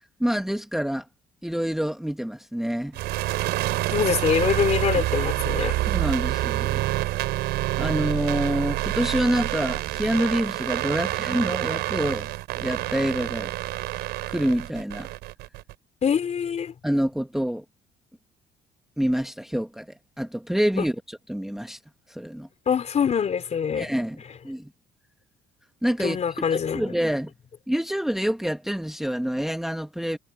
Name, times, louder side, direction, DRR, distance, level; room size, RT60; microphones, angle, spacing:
voice 1, 0.2-1.1 1.4-3.0 5.9-6.8 7.8-13.5 14.3-15.1 16.8-17.6 19.0-21.8 22.1-22.5 23.7-24.7 25.8-27.3 27.7-30.2, equal, ahead, 1.3 m, -27 dB
sound 1, 2.9-15.7, right 17 dB, 85° right, 4.3 m, -27 dB
voice 2, 3.9-5.7 16.0-16.7 20.8-20.9 22.7-23.9 26.0-26.9, left 7 dB, 40° left, 4.2 m, -24 dB
cardioid pair, 110°, 17 cm